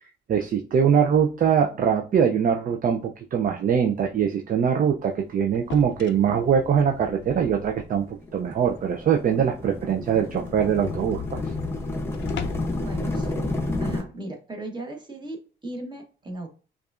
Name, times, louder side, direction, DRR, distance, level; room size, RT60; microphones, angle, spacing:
voice 1, 0.3-11.4, right 7 dB, 45° right, 4 dB, 0.4 m, -22 dB
sound 1, 5.5-8.1 8.5-8.6 9.0-9.1 9.4-9.5 9.8-9.9 10.2-12.8, left 7 dB, 65° left, 0.4 m, -39 dB
sound 2, 7.1-14.0, left 2 dB, 10° left, 0.8 m, -31 dB
voice 2, 12.8-13.4 13.8-16.5, right 2 dB, 20° right, 2 dB, 1.1 m, -37 dB
4.7 x 2.3 x 2.4 m, 0.36 s
cardioid pair, 90°, 20 cm